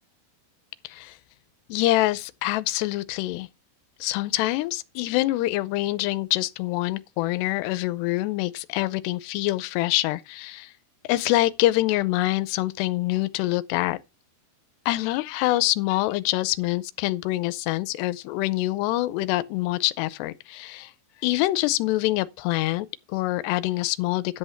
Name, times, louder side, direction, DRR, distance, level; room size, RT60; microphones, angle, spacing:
voice 1, 0.8-1.2 1.7-3.5 4.0-10.7 11.1-14.0 14.9-20.9 21.2-24.4, left 17 dB, 80° left, 2.6 m, -25 dB
10.5 x 7.9 x 4.4 m
omnidirectional pair, 5.1 m